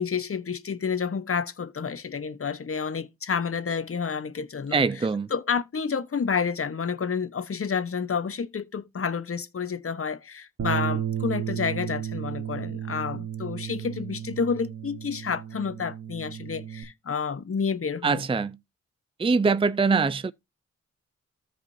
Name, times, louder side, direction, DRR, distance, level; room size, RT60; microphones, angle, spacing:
voice 1, 0.0-4.8 5.3-18.2, left 6 dB, 50° left, 1.2 m, -29 dB
voice 2, 4.7-5.3 18.0-18.6 19.2-20.3, right 4 dB, 20° right, 0.5 m, -23 dB
Bass guitar, 10.6-16.8, right 10 dB, 65° right, 1.7 m, -33 dB
14.0 x 5.2 x 2.7 m
cardioid pair, 60°, 29 cm